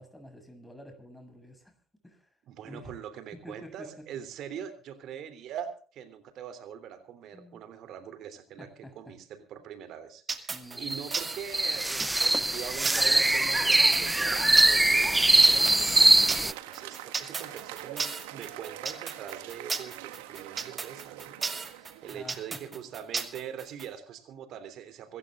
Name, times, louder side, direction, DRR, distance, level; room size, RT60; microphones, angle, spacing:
voice 1, 0.0-1.7 2.0-2.3 2.6-2.9 3.3-3.9 7.3-7.6 8.6-9.1 10.5-11.0 21.8-22.6, left 1 dB, 5° left, 5 dB, 7.8 m, -48 dB
voice 2, 2.5-8.7 8.9-25.2, right 9 dB, 65° right, 11 dB, 3.2 m, -43 dB
sound 1, 10.3-23.9, right 4 dB, 35° right, 2.4 m, -35 dB
sound 2, 10.8-16.5, right 2 dB, 15° right, 0.6 m, -22 dB
Applause, 13.8-23.1, right 14 dB, 85° right, 1.6 m, -44 dB
26.0 x 15.0 x 2.5 m, 0.42 s
hypercardioid pair, 60°, 0 cm